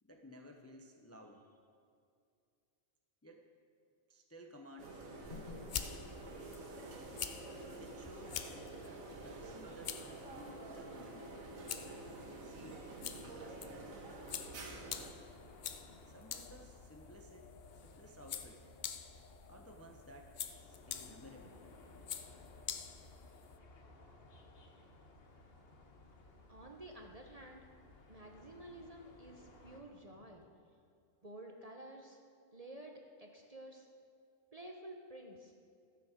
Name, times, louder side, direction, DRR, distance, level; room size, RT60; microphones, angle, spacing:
voice 1, 0.0-1.6 3.2-3.5 4.1-5.7 7.8-11.3 12.3-14.1 16.0-18.6 19.5-21.6 30.1-30.5, equal, 15° left, 2 dB, 0.5 m, -57 dB
sound 1, 4.8-15.1, right 2 dB, 80° right, 1.7 m, -49 dB
sound 2, 5.2-23.6, left 8 dB, 90° left, 0.4 m, -48 dB
sound 3, 14.4-29.8, left 2 dB, 50° left, 1.2 m, -59 dB
voice 2, 26.5-27.7 28.1-30.4 31.2-32.2 32.5-33.9 34.5-35.5, right 1 dB, 35° right, 2 dB, 0.7 m, -51 dB
13.5 x 6.9 x 6.4 m, 2.3 s
omnidirectional pair, 1.4 m